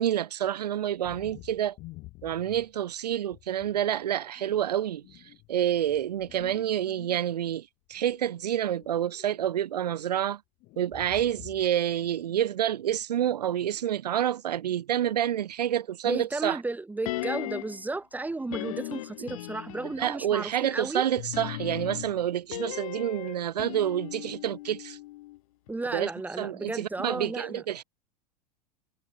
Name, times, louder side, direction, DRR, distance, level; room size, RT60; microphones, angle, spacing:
voice 1, 0.0-1.7 2.2-5.0 5.5-10.4 10.8-16.6 20.0-25.0 25.9-26.1 26.4-27.8, right 11 dB, 75° right, 0.4 m, -28 dB
sound 1, 1.0-2.8 3.3-4.0 4.4-7.5 7.9-9.5 9.7-10.0 10.6-11.8 12.1-12.4, left 20 dB, 40° left, 1.2 m, -50 dB
voice 2, 16.0-21.0 25.7-27.6, right 2 dB, 10° right, 1.7 m, -33 dB
sound 2, 17.1-17.9 18.5-20.1 21.2-25.4 25.7-25.8, left 18 dB, 55° left, 0.7 m, -37 dB
figure-of-eight pair, 85°, 21 cm